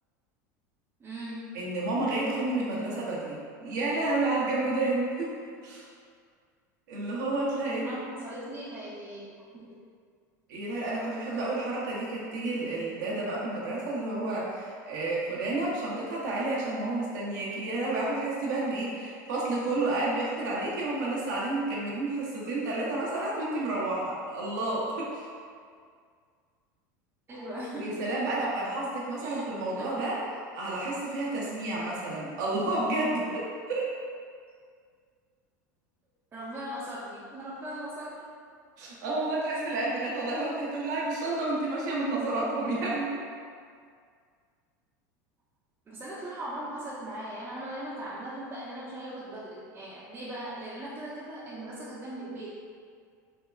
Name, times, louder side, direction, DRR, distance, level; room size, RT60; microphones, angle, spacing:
voice 1, 1.0-1.6 7.7-9.8 27.3-28.0 29.2-30.2 36.3-38.3 45.9-52.5, right 1 dB, 25° right, -9 dB, 0.6 m, -39 dB
voice 2, 1.5-5.3 5.6-5.8 6.9-8.0 10.5-25.3 27.8-33.9 38.8-43.2, right 2 dB, 75° right, -5 dB, 0.7 m, -30 dB
3.4 x 2.2 x 2.2 m, 2.1 s
hypercardioid pair, 95°, 10 cm